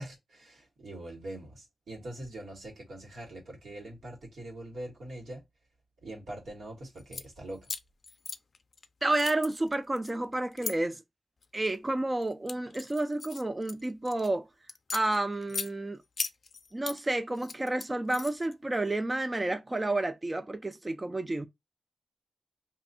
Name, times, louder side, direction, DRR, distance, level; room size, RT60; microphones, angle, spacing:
voice 1, 0.0-5.4 6.0-7.7, right 1 dB, 85° right, 1.5 m, -43 dB
sound 1, 7.0-7.3 7.6-8.9 9.1-10.7 11.4-11.8 12.2-14.3 14.7-15.7 16.2-17.0 17.3-18.5, left 4 dB, 60° left, 0.4 m, -38 dB
voice 2, 9.0-11.0 11.5-14.5 14.9-16.0 16.7-21.5, right 2 dB, 25° right, 0.3 m, -30 dB
2.7 x 2.6 x 4.0 m
cardioid pair, 70°, 0 cm